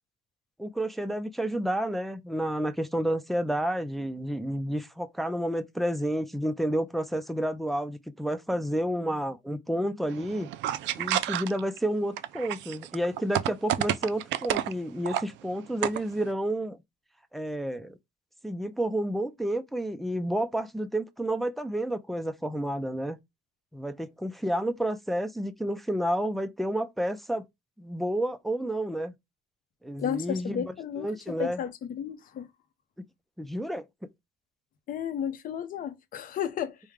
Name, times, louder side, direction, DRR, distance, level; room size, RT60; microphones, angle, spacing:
voice 1, 0.6-10.5 11.0-16.8 17.3-18.0 18.4-23.2 23.7-27.4 27.8-29.1 29.8-31.6 33.4-33.9, right 1 dB, ahead, 0.3 m, -30 dB
sound 1, 10.1-11.8 12.2-14.7 15.1-15.2 15.6-16.2, right 12 dB, 70° right, 0.4 m, -30 dB
voice 2, 30.0-32.5 34.9-36.8, left 9 dB, 45° left, 0.7 m, -33 dB
4.8 x 2.1 x 3.5 m
cardioid pair, 160°, 20 cm